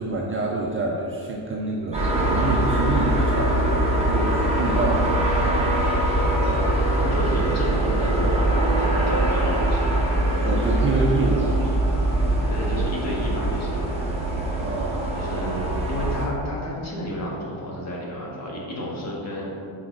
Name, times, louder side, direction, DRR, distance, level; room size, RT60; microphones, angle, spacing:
voice 1, 0.0-6.1 10.4-11.7 14.6-15.1, right 2 dB, 30° right, -2 dB, 0.4 m, -27 dB
sound 1, 1.9-16.3, right 1 dB, 15° right, 1.1 m, -22 dB
voice 2, 7.0-8.4 8.7-10.1 12.5-13.9 15.1-19.4, equal, 35° left, -4 dB, 1.3 m, -31 dB
4.7 x 4.3 x 4.6 m, 2.5 s
cardioid pair, 140°, 47 cm